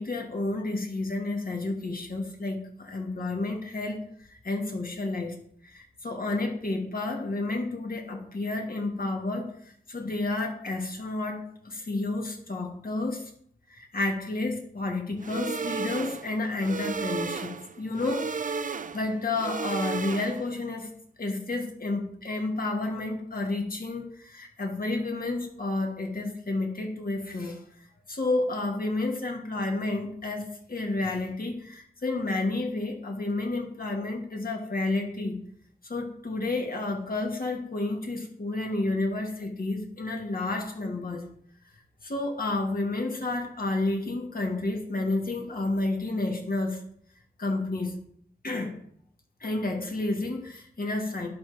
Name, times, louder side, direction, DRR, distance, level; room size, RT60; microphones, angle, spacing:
voice 1, 0.0-4.0 4.3-5.4 5.6-9.5 9.9-13.3 13.7-20.9 21.2-27.6 28.1-35.3 35.8-41.2 42.0-46.8 47.4-48.0 48.4-48.8 49.4-51.3, left 2 dB, 60° left, 1 dB, 1.6 m, -30 dB
sound 1, 15.2-20.6, right 5 dB, 50° right, 0.5 m, -34 dB
11.5 x 3.9 x 3.3 m, 0.64 s
cardioid pair, 45°, 17 cm